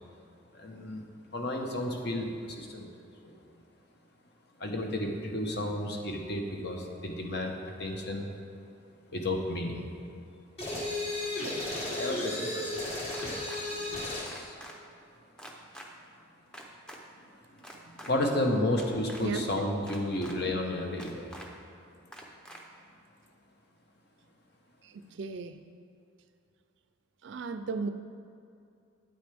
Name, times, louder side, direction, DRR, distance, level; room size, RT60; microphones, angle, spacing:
voice 1, 0.5-2.9 3.2-3.4 4.6-8.3 9.1-9.9 11.2-11.3 11.9-12.8 13.7-14.5 18.0-21.4, left 1 dB, 50° left, 2 dB, 1.0 m, -32 dB
sound 1, 10.6-14.3, left 2 dB, 30° left, 1.4 m, -34 dB
sound 2, 13.1-13.6 14.3-14.7 15.4-15.9 16.5-17.0 17.6-18.1 18.7-19.2 19.9-20.4 21.0-21.5 22.1-22.6, equal, 5° left, 0.6 m, -46 dB
voice 2, 25.2-25.5 27.2-27.9, right 4 dB, 60° right, 10 dB, 0.4 m, -34 dB
9.0 x 8.6 x 3.4 m, 2.5 s
head